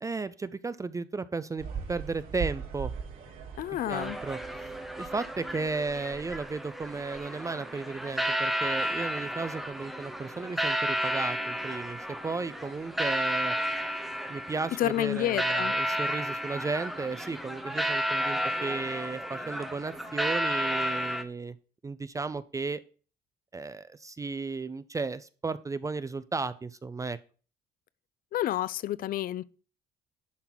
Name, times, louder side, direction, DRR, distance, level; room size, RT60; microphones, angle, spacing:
voice 1, 0.0-2.9 3.9-4.4 5.0-13.6 14.3-21.6 21.8-22.8 23.5-27.2, right 4 dB, 20° right, 0.5 m, -34 dB
sound 1, 1.6-6.3, right 6 dB, 60° right, 3.6 m, -40 dB
voice 2, 3.6-4.2 14.8-15.7 28.3-29.4, left 13 dB, 60° left, 0.5 m, -29 dB
sound 2, 3.9-21.2, equal, ahead, 1.1 m, -32 dB
11.5 x 3.8 x 5.9 m
cardioid pair, 110°, 17 cm